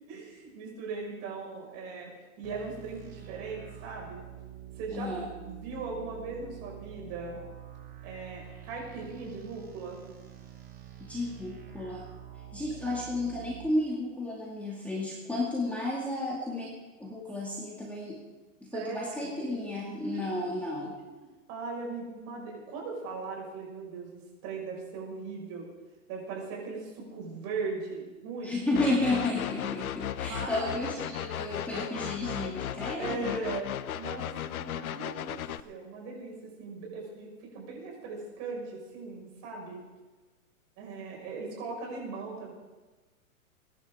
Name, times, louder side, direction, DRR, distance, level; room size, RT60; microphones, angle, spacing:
voice 1, 0.1-4.2 4.8-5.1 5.4-7.4 8.0-10.0 12.9-13.1 17.2-17.3 18.7-19.6 20.1-20.2 21.0-21.1 21.5-25.7 26.1-28.6 30.2-30.8 33.0-33.7 33.9-35.4 35.6-37.3 37.5-39.8 40.8-42.5, right 4 dB, 35° right, -1 dB, 5.9 m, -39 dB
sound 1, 2.4-13.7, right 11 dB, 20° right, 2.6 m, -47 dB
voice 2, 4.9-5.3 11.0-12.0 12.5-16.7 17.0-18.2 18.6-21.0 28.4-33.4, left 2 dB, 5° left, -5 dB, 2.4 m, -32 dB
sound 2, 28.7-35.6, left 11 dB, 80° left, 0.7 m, -36 dB
22.5 x 11.0 x 3.8 m, 1.2 s
hypercardioid pair, 130°, 42 cm